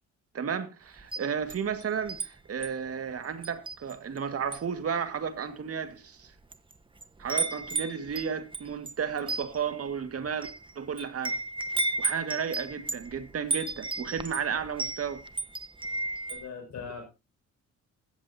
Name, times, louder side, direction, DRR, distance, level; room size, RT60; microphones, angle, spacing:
voice 1, 0.3-6.3 7.2-10.5 10.8-11.4 12.0-15.2, right 7 dB, 50° right, 2.1 m, -33 dB
Wind chime, 1.0-2.3 2.6-2.9 3.4-4.2 4.5-4.8 5.5-5.6 6.3-6.7 7.0-16.5, right 3 dB, 15° right, 1.4 m, -34 dB
voice 2, 16.3-17.1, left 6 dB, 65° left, 6.5 m, -40 dB
16.5 x 14.0 x 2.9 m
cardioid pair, 90°, 30 cm